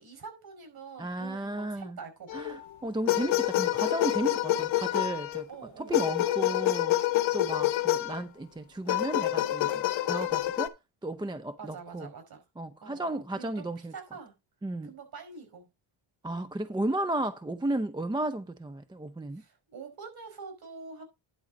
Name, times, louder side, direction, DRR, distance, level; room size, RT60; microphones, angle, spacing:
voice 1, 0.0-2.6 5.5-6.2 11.6-12.4 12.8-14.3 14.8-15.7 19.3-21.0, right 5 dB, 50° right, 5.2 m, -46 dB
voice 2, 1.0-2.0 2.3-5.5 5.8-7.0 7.3-10.7 11.0-12.1 12.6-13.9 14.6-14.9 16.2-19.4, right 1 dB, 10° right, 0.5 m, -34 dB
sound 1, 2.3-2.6 3.1-5.4 5.9-8.2 8.9-10.7, left 14 dB, 70° left, 1.0 m, -27 dB
11.0 x 3.9 x 6.1 m
cardioid pair, 95°, 48 cm